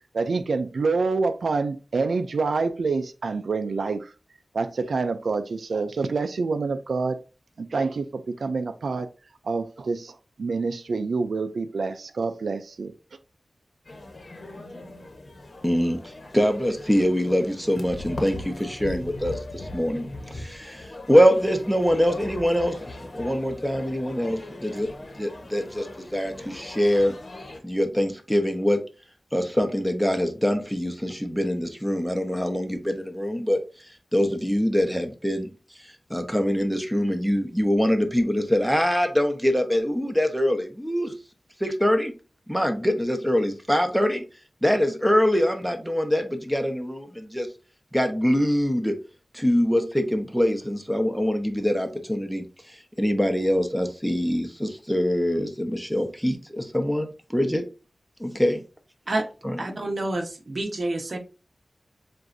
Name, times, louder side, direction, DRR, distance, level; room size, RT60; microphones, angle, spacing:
voice 1, 0.1-4.1 4.5-7.2 7.6-9.1 9.4-12.9, right 4 dB, 85° right, 0.4 m, -27 dB
sound 1, 13.8-27.6, left 2 dB, 55° left, 1.2 m, -40 dB
voice 2, 15.6-16.0 16.3-24.9 25.2-27.1 27.6-28.8 29.3-33.6 34.1-35.5 36.1-41.1 41.6-42.1 42.5-44.2 44.6-47.5 47.9-48.9 49.3-52.4 53.0-57.6 58.2-58.6 59.4-59.6, equal, ahead, 1.0 m, -24 dB
voice 3, 59.6-61.2, right 2 dB, 50° right, 1.1 m, -28 dB
7.5 x 2.6 x 2.6 m
wide cardioid pair, 65°, 0 cm